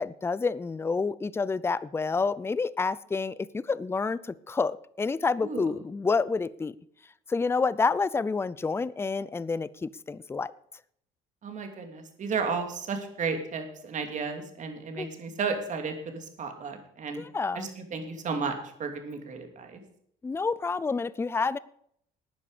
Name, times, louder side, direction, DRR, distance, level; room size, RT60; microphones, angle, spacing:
voice 1, 0.0-6.8 7.3-10.5 15.0-15.1 17.2-17.7 20.2-21.6, left 4 dB, 15° left, 18 dB, 0.5 m, -28 dB
voice 2, 5.4-5.7 11.4-17.2 17.5-18.5 18.8-19.8, right 5 dB, 45° right, 5 dB, 2.7 m, -33 dB
12.5 x 9.5 x 5.0 m, 0.69 s
cardioid pair, 110°, 17 cm